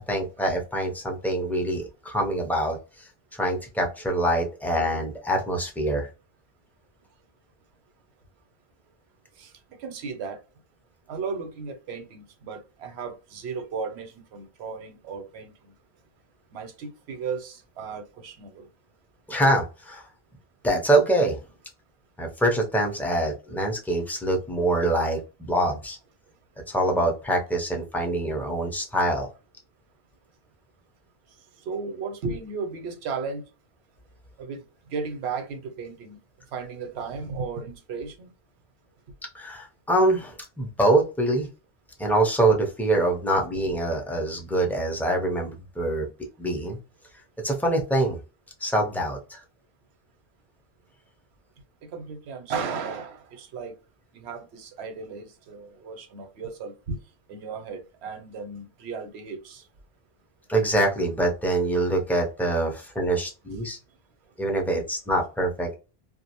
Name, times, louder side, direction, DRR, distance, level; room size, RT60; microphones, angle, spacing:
voice 1, 0.1-6.1 19.3-20.0 20.6-21.4 22.2-26.0 26.7-29.3 39.3-41.5 42.0-46.1 46.4-46.8 47.4-48.2 48.6-49.4 60.5-63.8 64.4-65.8, right 1 dB, 5° left, 0.3 m, -25 dB
voice 2, 9.8-10.4 11.1-15.7 16.5-18.7 31.7-33.4 34.4-34.6 34.9-36.2 36.5-38.3 51.9-53.7 54.1-57.0 57.3-59.6, right 5 dB, 90° right, 0.9 m, -35 dB
2.5 x 2.1 x 2.8 m
omnidirectional pair, 1.1 m